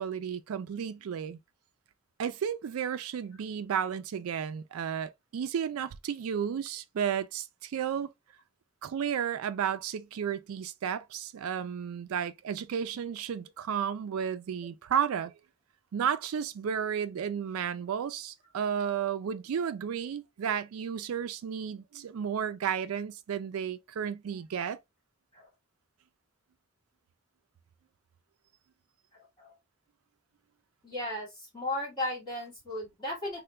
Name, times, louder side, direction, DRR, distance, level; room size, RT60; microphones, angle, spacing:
voice 1, 0.0-1.4 2.2-8.1 8.8-15.3 15.9-24.8, right 8 dB, 90° right, 0.4 m, -33 dB
voice 2, 30.8-33.4, left 1 dB, 20° left, 2.0 m, -35 dB
3.3 x 2.2 x 3.0 m
head